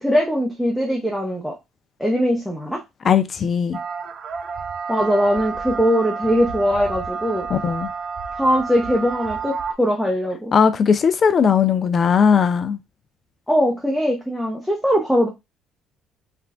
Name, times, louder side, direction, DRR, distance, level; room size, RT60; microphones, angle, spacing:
voice 1, 0.0-1.6 2.0-2.8 4.9-7.5 8.4-10.5 13.5-15.3, equal, ahead, 0.7 m, -21 dB
voice 2, 3.0-3.8 7.5-7.9 10.5-12.8, left 6 dB, 45° left, 0.4 m, -18 dB
sound 1, 3.7-9.7, right 5 dB, 55° right, 0.4 m, -30 dB
3.3 x 2.3 x 2.3 m
hypercardioid pair, 60°, 0 cm